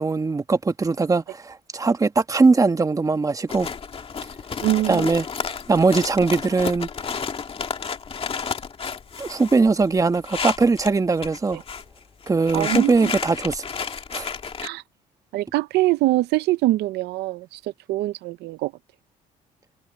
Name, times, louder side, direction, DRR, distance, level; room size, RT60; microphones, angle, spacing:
voice 1, 0.0-3.7 4.9-6.9 9.2-11.6 12.3-13.6 14.1-14.3, right 4 dB, 20° right, 1.4 m, -20 dB
sound 1, 3.5-10.9 11.2-11.9 12.2-14.7, left 6 dB, 35° left, 2.2 m, -31 dB
voice 2, 4.6-5.1 11.5-11.6 12.5-13.1 14.6-14.8 15.3-18.7, right 17 dB, 80° right, 0.6 m, -23 dB
cardioid pair, 110°, 17 cm